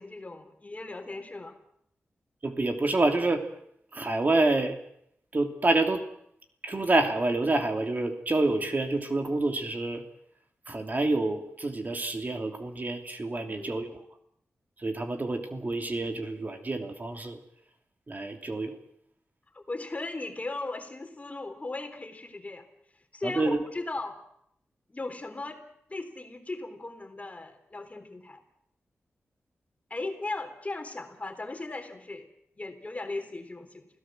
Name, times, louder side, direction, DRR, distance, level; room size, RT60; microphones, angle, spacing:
voice 1, 0.0-1.6 13.4-13.7 19.5-22.6 23.1-24.2 24.9-25.6 25.9-28.4 29.9-32.3 32.6-33.9, left 2 dB, 30° left, 7 dB, 3.6 m, -37 dB
voice 2, 2.4-3.5 3.9-4.8 5.3-6.1 6.6-10.0 10.7-14.0 14.8-17.4 18.1-18.8 23.2-23.6, right 2 dB, 40° right, 5 dB, 2.9 m, -27 dB
28.0 x 17.0 x 7.8 m, 0.73 s
wide cardioid pair, 75°, 5 cm